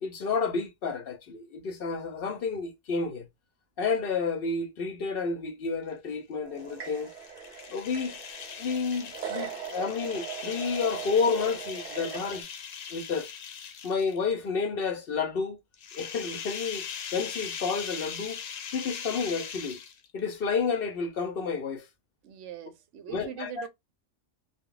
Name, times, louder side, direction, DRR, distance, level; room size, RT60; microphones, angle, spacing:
voice 1, 0.0-3.2 3.8-7.1 7.7-8.2 8.6-12.5 12.9-13.3 13.8-15.6 15.9-18.4 18.7-19.8 20.1-21.9 23.1-23.7, left 5 dB, 60° left, 0.7 m, -30 dB
sound 1, 6.4-12.4, right 8 dB, 45° right, 0.7 m, -40 dB
sound 2, 6.6-14.3 15.7-20.2, left 7 dB, 90° left, 1.0 m, -40 dB
voice 2, 22.2-23.7, right 9 dB, 70° right, 0.9 m, -41 dB
2.2 x 2.1 x 3.7 m
omnidirectional pair, 1.3 m